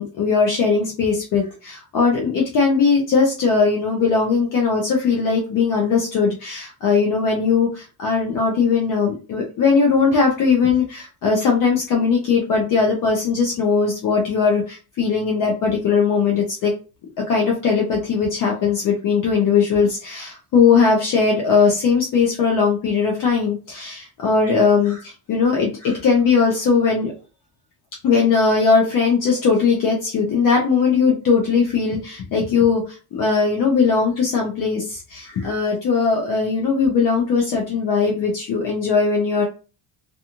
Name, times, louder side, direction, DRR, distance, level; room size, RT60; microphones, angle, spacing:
voice 1, 0.0-16.7 17.3-27.1 28.0-39.4, left 5 dB, 50° left, -1 dB, 0.6 m, -19 dB
2.5 x 2.4 x 2.8 m, 0.34 s
cardioid pair, 165°, 44 cm